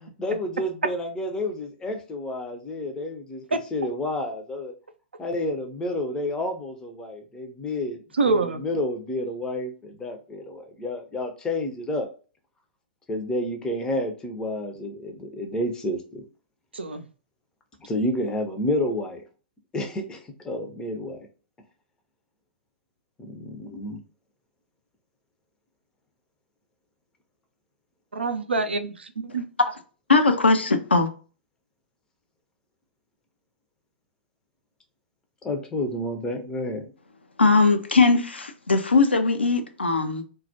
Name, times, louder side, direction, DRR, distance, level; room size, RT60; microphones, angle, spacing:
voice 1, 0.0-4.7 5.2-8.0 8.2-12.1 13.1-16.2 17.8-19.2 19.7-21.2 23.2-24.0 35.4-36.9, left 1 dB, 10° left, 0.5 m, -30 dB
voice 2, 8.2-8.6 16.7-17.0 28.1-29.4, right 3 dB, 75° right, 0.4 m, -25 dB
voice 3, 30.1-31.1 37.4-40.2, left 3 dB, 80° left, 0.4 m, -20 dB
2.2 x 2.0 x 2.7 m
figure-of-eight pair, 110°, 6 cm